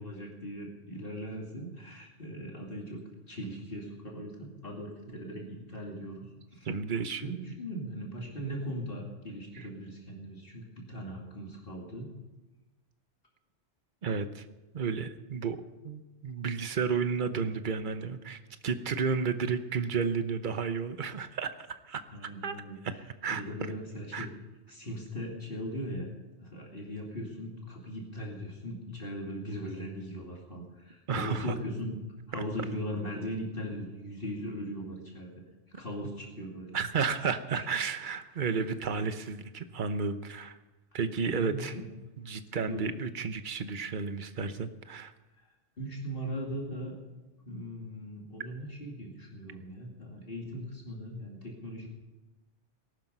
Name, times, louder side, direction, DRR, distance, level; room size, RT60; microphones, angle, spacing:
voice 1, 0.0-6.7 7.2-12.1 22.1-24.3 24.7-26.1 26.4-32.0 32.3-35.3 35.7-36.8 37.5-37.7 41.3-41.9 42.6-42.8 45.8-47.0 47.5-51.9, equal, 50° left, -2 dB, 2.6 m, -39 dB
voice 2, 6.6-7.3 9.5-9.7 14.0-14.4 14.7-15.6 15.8-22.0 22.4-22.6 22.8-22.9 23.2-23.4 24.1-24.3 31.1-31.6 32.3-32.4 36.7-40.6 40.9-41.8 42.2-45.1, right 5 dB, 45° right, 10 dB, 1.0 m, -32 dB
19.0 x 12.0 x 5.5 m, 1.1 s
omnidirectional pair, 1.2 m